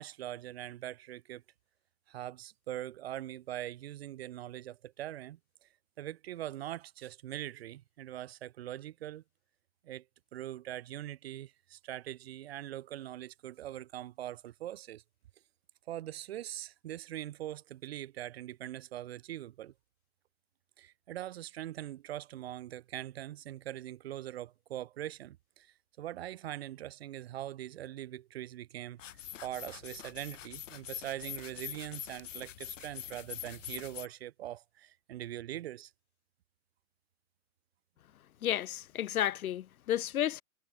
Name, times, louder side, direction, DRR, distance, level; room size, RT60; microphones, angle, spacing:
voice 1, 0.0-1.4 2.1-5.7 6.0-9.2 9.8-10.0 10.3-15.0 15.9-19.7 20.8-35.9, right 13 dB, 45° right, 1.4 m, -42 dB
sound 1, 29.0-34.1, left 11 dB, 60° left, 4.8 m, -44 dB
voice 2, 38.4-40.4, left 11 dB, 80° left, 1.0 m, -32 dB
hypercardioid pair, 165°, 42 cm